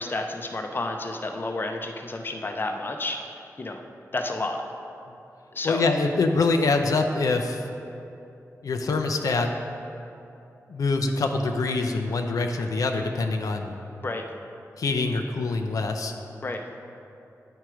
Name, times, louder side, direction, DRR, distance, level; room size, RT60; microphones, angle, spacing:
voice 1, 0.0-3.2 3.6-3.8 4.1-4.6 5.5-5.8 14.0-14.3 16.4-16.6, left 2 dB, 35° left, 4 dB, 0.5 m, -30 dB
voice 2, 5.6-7.7 8.6-9.5 10.7-13.7 14.8-16.1, left 3 dB, 85° left, 4 dB, 0.5 m, -25 dB
9.0 x 4.6 x 4.8 m, 2.7 s
wide cardioid pair, 110°, 6 cm